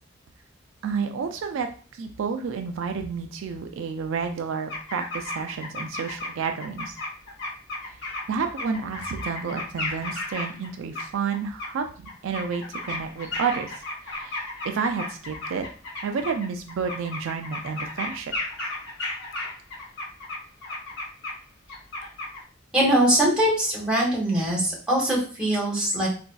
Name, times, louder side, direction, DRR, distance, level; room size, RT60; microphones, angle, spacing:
voice 1, 0.8-7.0 8.3-15.6 16.0-18.3, right 5 dB, 70° right, 5 dB, 0.3 m, -30 dB
sound 1, 4.7-6.3 6.6-10.7 10.9-11.7 12.1-21.4 21.7-22.4, left 2 dB, 60° left, 1.1 m, -34 dB
voice 2, 22.7-26.1, right 1 dB, 5° right, -5 dB, 1.3 m, -22 dB
4.0 x 2.5 x 2.2 m, 0.40 s
head